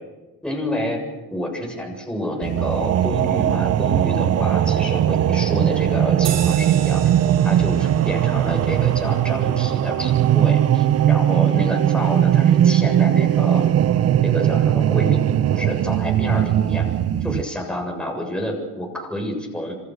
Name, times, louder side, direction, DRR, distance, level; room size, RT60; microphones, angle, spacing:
voice 1, 0.4-1.0 1.3-7.0 7.4-13.6 14.2-15.2 15.5-16.8 17.2-19.7, left 1 dB, 5° left, 1 dB, 7.5 m, -28 dB
sound 1, 2.4-17.4, right 11 dB, 50° right, 0.9 m, -19 dB
sound 2, 6.2-11.1, right 9 dB, 80° right, 5.2 m, -37 dB
28.0 x 24.5 x 6.5 m, 1.1 s
cardioid pair, 135°, 31 cm